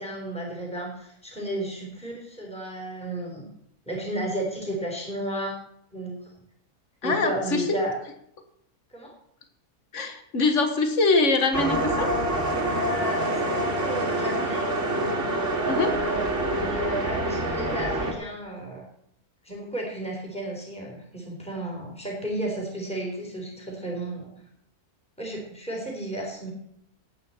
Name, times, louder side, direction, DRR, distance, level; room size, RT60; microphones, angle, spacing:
voice 1, 0.0-3.5 3.9-5.5 5.9-6.1 7.0-8.0 8.9-9.1 12.6-15.0 15.4-18.8 19.4-24.3 25.2-26.5, right 1 dB, 5° left, -2 dB, 3.8 m, -33 dB
voice 2, 7.0-7.6 9.9-12.1 15.7-15.9, left 3 dB, 55° left, 6 dB, 1.9 m, -23 dB
sound 1, 11.5-18.1, right 1 dB, 55° right, 2.5 m, -26 dB
18.0 x 9.0 x 4.4 m, 0.72 s
omnidirectional pair, 1.6 m